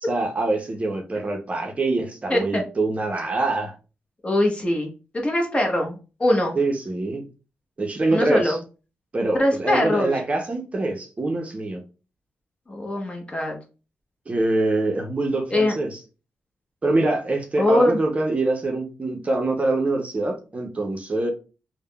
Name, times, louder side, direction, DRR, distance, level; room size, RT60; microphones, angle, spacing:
voice 1, 0.0-3.7 6.5-7.2 7.8-8.6 9.1-11.8 14.3-16.0 16.8-21.3, right 2 dB, 30° right, 0.6 m, -24 dB
voice 2, 2.3-2.6 4.2-6.6 8.1-8.6 9.3-10.1 12.7-13.6 15.5-15.7 17.6-18.0, left 1 dB, 25° left, 0.8 m, -22 dB
3.4 x 2.1 x 2.2 m
cardioid pair, 70°, 4 cm